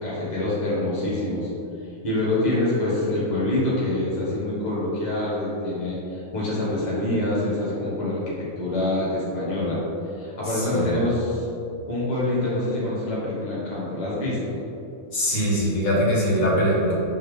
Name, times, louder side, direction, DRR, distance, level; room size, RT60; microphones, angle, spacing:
voice 1, 0.0-1.5 2.0-9.8 10.2-11.5 11.9-14.4, left 1 dB, 30° left, -7 dB, 1.4 m, -25 dB
voice 2, 10.5-11.0 15.1-16.9, equal, 80° left, -6 dB, 2.0 m, -22 dB
5.5 x 3.7 x 5.0 m, 2.7 s
omnidirectional pair, 1.4 m